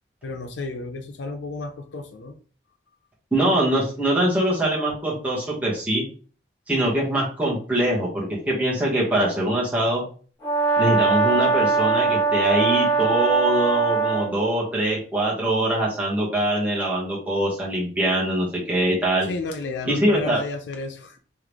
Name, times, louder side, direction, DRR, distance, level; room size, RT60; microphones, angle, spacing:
voice 1, 0.2-2.4 19.3-21.2, left 3 dB, 80° left, 6 dB, 0.5 m, -32 dB
voice 2, 3.3-6.0 6.7-10.0 10.8-19.3 19.9-20.4, right 1 dB, 10° right, -6 dB, 1.5 m, -23 dB
Brass instrument, 10.4-14.3, right 4 dB, 20° left, 1.9 m, -21 dB
3.6 x 3.4 x 3.1 m, 0.41 s
head